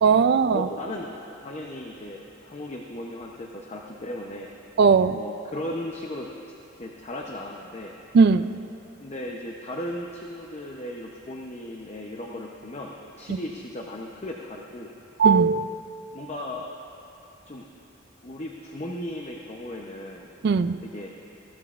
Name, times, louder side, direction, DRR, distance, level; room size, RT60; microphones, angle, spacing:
voice 1, 0.0-0.7 4.8-5.2 8.1-8.5 13.3-13.4 15.2-15.8 20.4-20.8, right 5 dB, 55° right, 12 dB, 0.3 m, -18 dB
voice 2, 0.5-1.1 1.4-4.5 5.1-6.3 6.8-7.9 9.0-14.9 16.1-16.7 17.5-17.7 18.2-20.3 20.8-21.1, left 1 dB, 35° left, 0 dB, 0.7 m, -36 dB
20.0 x 15.5 x 2.5 m, 2.9 s
head